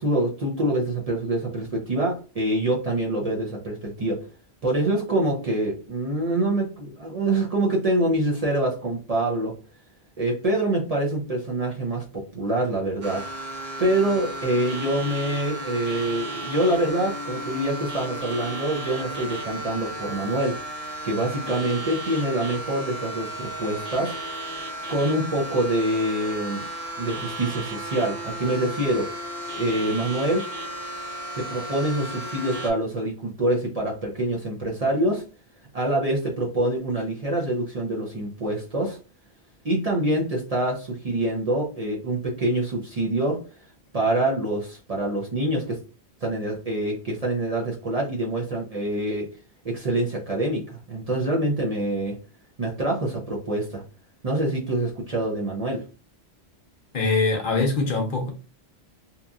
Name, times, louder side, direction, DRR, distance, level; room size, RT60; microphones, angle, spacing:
voice 1, 0.0-4.2 4.6-9.6 10.2-13.3 13.8-20.6 21.0-24.2 24.9-26.7 27.0-29.1 29.6-30.5 31.3-35.2 35.7-39.0 39.6-43.4 43.9-45.8 46.2-49.3 49.6-52.2 52.6-53.8 54.2-55.8, right 1 dB, 45° right, 0.6 m, -25 dB
sound 1, 13.0-32.7, right 1 dB, 65° right, 1.1 m, -34 dB
voice 2, 56.9-58.3, left 3 dB, 55° left, 0.7 m, -23 dB
2.8 x 2.5 x 2.3 m
omnidirectional pair, 1.1 m